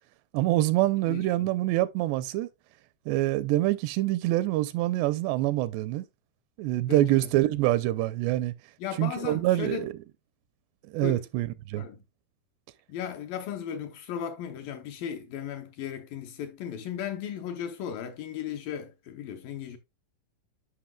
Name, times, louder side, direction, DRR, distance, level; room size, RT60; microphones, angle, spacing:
voice 1, 0.3-2.5 3.1-6.0 6.6-8.5 9.0-9.9 10.9-11.9, right 16 dB, 85° right, 2.6 m, -25 dB
voice 2, 1.1-1.5 6.9-7.3 8.8-9.9 11.0-11.3 11.8-12.0 12.9-19.8, left 9 dB, 80° left, 2.1 m, -36 dB
11.5 x 5.5 x 2.2 m
omnidirectional pair, 4.9 m